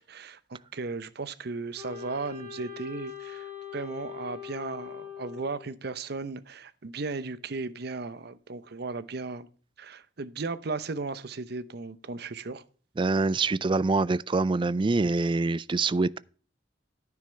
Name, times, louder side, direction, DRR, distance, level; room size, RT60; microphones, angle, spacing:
voice 1, 0.1-9.5 9.8-12.6, right 3 dB, 60° right, 0.8 m, -36 dB
Wind instrument woodwind instrument, 1.7-5.7, left 8 dB, 45° right, 6.2 m, -42 dB
voice 2, 13.0-16.2, right 3 dB, 25° right, 0.4 m, -25 dB
10.5 x 9.6 x 3.3 m
head